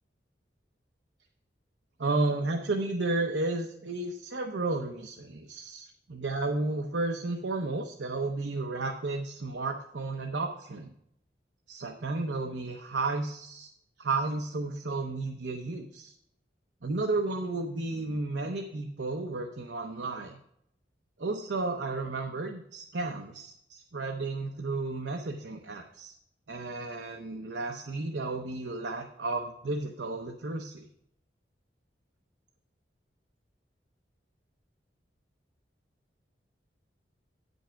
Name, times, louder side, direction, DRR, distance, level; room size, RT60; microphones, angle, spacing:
voice 1, 2.0-10.9 11.7-13.7 14.0-16.1 16.8-20.4 21.2-26.1 26.5-30.9, right 3 dB, 80° right, 3 dB, 0.8 m, -33 dB
8.8 x 5.4 x 5.7 m, 0.74 s
head